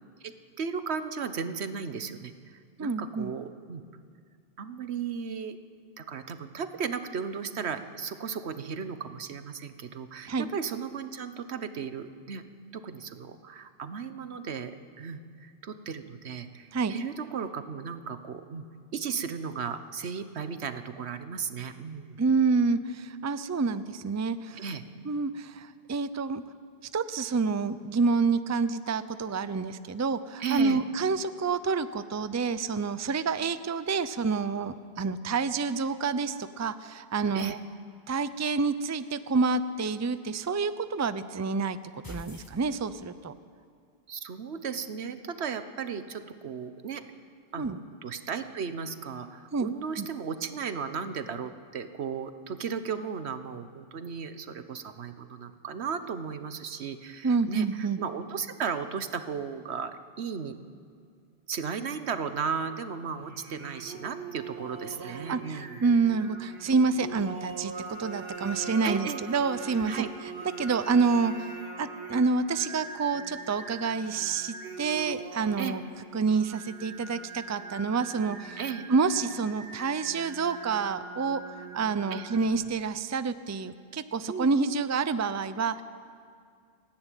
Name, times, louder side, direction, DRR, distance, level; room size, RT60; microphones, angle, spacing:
voice 1, 0.2-3.8 4.6-5.6 6.0-12.4 12.7-18.6 18.9-22.2 24.6-24.8 30.4-30.8 37.3-37.6 44.1-47.0 47.5-60.5 61.5-65.8 68.8-69.2 69.9-70.1 75.6-75.8 78.6-78.8 82.1-82.3 84.3-84.6, right 6 dB, 90° right, 10 dB, 1.3 m, -35 dB
voice 2, 2.8-3.3 10.3-10.5 16.7-16.9 22.2-24.6 25.0-26.4 26.9-37.6 38.1-41.8 42.1-43.3 47.6-47.8 49.5-49.7 50.0-50.1 57.2-58.0 65.0-70.0 70.4-71.5 71.8-75.8 76.1-78.6 78.9-81.4 81.7-85.8, right 4 dB, 20° right, 13 dB, 0.4 m, -28 dB
sound 1, 42.0-43.3, left 1 dB, 20° left, 1.4 m, -45 dB
Singing, 63.2-82.8, right 4 dB, 60° right, 2.1 m, -42 dB
29.5 x 10.5 x 9.1 m, 2.2 s
omnidirectional pair, 1.1 m